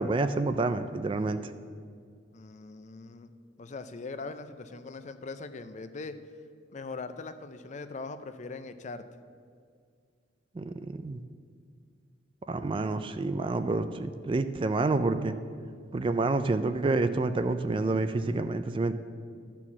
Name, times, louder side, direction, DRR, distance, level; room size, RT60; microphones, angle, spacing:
voice 1, 0.0-1.4 10.6-11.2 12.5-15.3 15.9-18.9, right 3 dB, 25° right, 10 dB, 0.3 m, -28 dB
voice 2, 2.3-3.3 3.6-6.2 6.7-9.0, left 3 dB, 40° left, 10 dB, 0.4 m, -41 dB
12.5 x 4.6 x 7.1 m, 2.2 s
head